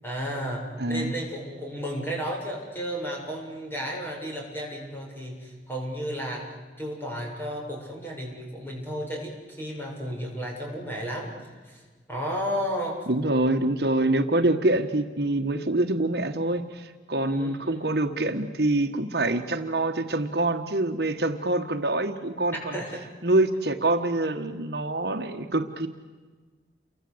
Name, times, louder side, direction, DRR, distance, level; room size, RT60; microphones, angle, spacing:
voice 1, 0.0-6.5 6.8-11.8 12.1-13.0 17.2-17.9 22.7-23.0, equal, 10° left, -1 dB, 7.0 m, -33 dB
voice 2, 0.8-1.1 13.1-22.8 23.2-25.9, right 2 dB, 60° right, 6 dB, 1.5 m, -25 dB
29.0 x 24.5 x 8.0 m, 1.4 s
head